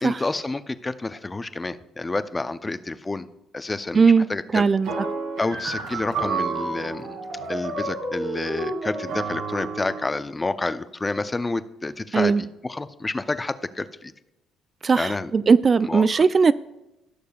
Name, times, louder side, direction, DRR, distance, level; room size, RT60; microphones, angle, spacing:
voice 1, 0.0-3.3 3.5-4.6 5.4-7.2 7.5-14.1 15.0-15.3 15.8-16.3, left 2 dB, 20° left, 13 dB, 0.5 m, -29 dB
voice 2, 3.9-4.3 4.5-4.9 12.1-12.4 14.8-16.5, right 5 dB, 40° right, 15 dB, 0.3 m, -18 dB
sound 1, 4.8-10.1, right 3 dB, 80° right, 2.3 m, -30 dB
17.0 x 6.6 x 2.3 m, 0.94 s
supercardioid pair, 60°, 0 cm